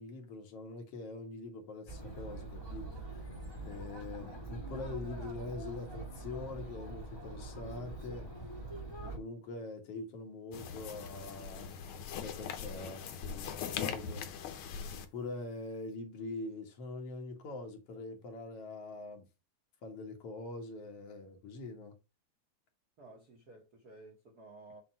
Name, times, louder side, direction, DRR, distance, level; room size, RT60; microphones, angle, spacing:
voice 1, 0.0-3.3 3.6-8.3 9.0-14.3 14.9-19.3 19.8-22.0, left 3 dB, 55° left, 2.2 m, -44 dB
Chatter, 1.9-9.2, right 2 dB, 20° left, 0.6 m, -44 dB
sound 1, 10.5-15.1, left 7 dB, 85° left, 1.2 m, -41 dB
voice 2, 23.0-24.8, right 2 dB, 60° right, 1.0 m, -54 dB
7.5 x 2.7 x 5.5 m
omnidirectional pair, 3.4 m